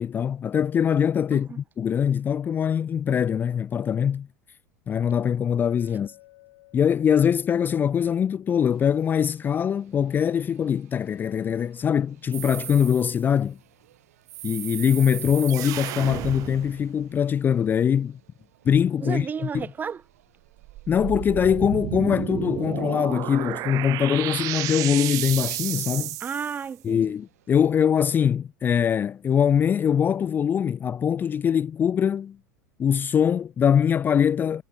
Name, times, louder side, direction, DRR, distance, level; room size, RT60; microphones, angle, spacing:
voice 1, 0.0-4.3 4.9-6.1 6.7-13.6 14.4-18.2 18.7-19.3 19.5-19.7 20.9-26.1 26.8-32.4 32.8-34.6, left 8 dB, 20° left, 0.4 m, -23 dB
Chink clink, 5.7-9.7, left 22 dB, 55° left, 5.0 m, -56 dB
sound 1, 8.7-27.7, right 14 dB, 60° right, 6.7 m, -62 dB
sound 2, 12.3-13.2 14.3-17.0 20.6-26.7, right 19 dB, 40° right, 0.5 m, -32 dB
voice 2, 19.0-20.0 26.2-27.0, right 6 dB, 20° right, 1.0 m, -32 dB
figure-of-eight pair, 80°, 9 cm